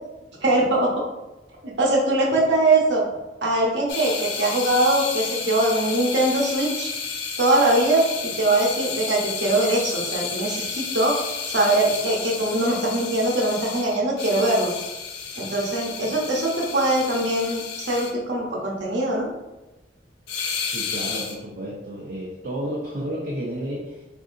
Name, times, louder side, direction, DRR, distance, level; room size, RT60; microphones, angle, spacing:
voice 1, 0.4-1.0 1.6-3.0 3.4-6.9 7.4-11.2 11.5-14.7 15.4-19.3, right 2 dB, 80° right, -2 dB, 0.8 m, -22 dB
sound 1, 3.9-18.1 20.3-21.4, left 5 dB, 75° left, 0.5 m, -31 dB
voice 2, 20.7-24.0, equal, 55° right, -4 dB, 0.5 m, -31 dB
3.7 x 2.6 x 2.5 m, 1.0 s
head